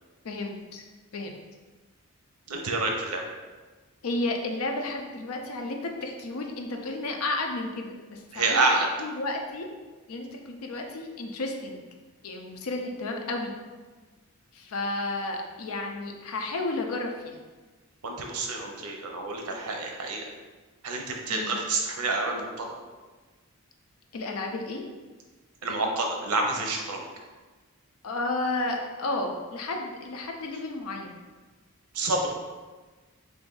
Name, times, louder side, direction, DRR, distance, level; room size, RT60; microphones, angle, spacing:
voice 1, 0.2-0.8 1.1-1.3 4.0-8.6 9.0-9.7 10.1-11.8 12.2-13.6 14.5-17.3 21.3-21.5 24.1-24.8 28.0-31.2, left 2 dB, 80° left, 2 dB, 0.5 m, -32 dB
voice 2, 2.5-3.2 8.3-8.9 18.0-20.2 20.8-22.7 25.6-27.0 31.9-32.3, right 3 dB, 90° right, 2 dB, 0.6 m, -28 dB
3.4 x 2.5 x 3.8 m, 1.3 s
head